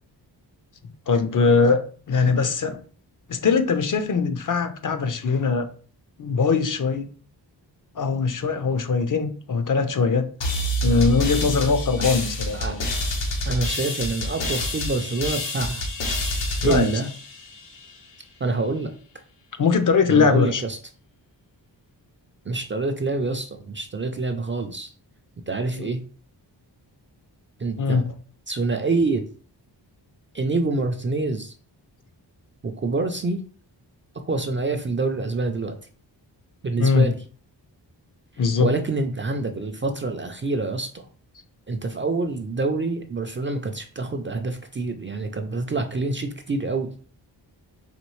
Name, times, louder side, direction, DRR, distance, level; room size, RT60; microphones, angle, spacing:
voice 1, 1.1-2.8 3.3-5.7 6.2-7.1 8.0-10.3 10.8-12.9 16.6-16.9 19.6-20.6 27.8-28.0 36.8-37.1 38.4-38.7, left 5 dB, 45° left, 8 dB, 0.6 m, -21 dB
sound 1, 10.4-17.9, equal, 85° left, 1.1 m, -27 dB
voice 2, 13.4-15.9 16.6-17.1 18.4-18.9 20.1-20.8 22.5-24.9 25.5-26.0 27.6-28.0 28.5-29.2 30.3-31.5 32.6-33.4 34.1-35.8 36.6-37.2 38.6-41.1 41.7-46.9, right 3 dB, 30° right, 5 dB, 0.4 m, -26 dB
4.2 x 3.1 x 3.0 m, 0.42 s
wide cardioid pair, 120°, 43 cm